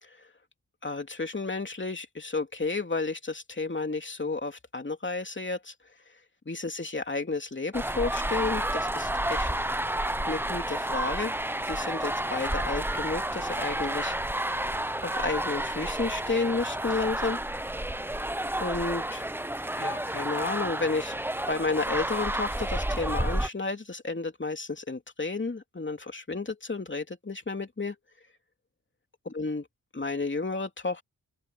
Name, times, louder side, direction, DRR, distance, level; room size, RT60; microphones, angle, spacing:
voice 1, 0.8-5.7 6.5-9.5 10.3-11.3 11.7-14.2 15.0-17.4 18.6-19.3 19.8-21.2 21.5-27.9 29.2-29.7 29.9-31.0, left 3 dB, 30° left, 3.0 m, -32 dB
sound 1, 7.7-23.5, right 1 dB, 5° right, 1.0 m, -30 dB
open air
cardioid pair, 55°, 37 cm